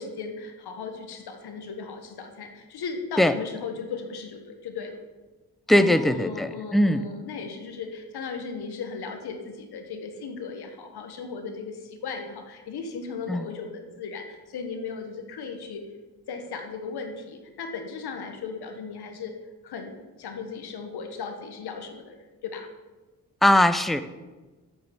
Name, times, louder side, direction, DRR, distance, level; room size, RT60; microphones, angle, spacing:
voice 1, 0.0-5.0 5.7-15.8 16.3-19.3 19.6-22.7, left 5 dB, 90° left, 5 dB, 1.4 m, -36 dB
voice 2, 5.7-7.0 13.3-13.5 23.4-24.0, left 1 dB, ahead, 11 dB, 0.8 m, -20 dB
7.8 x 6.9 x 8.0 m, 1.2 s
supercardioid pair, 45°, 37 cm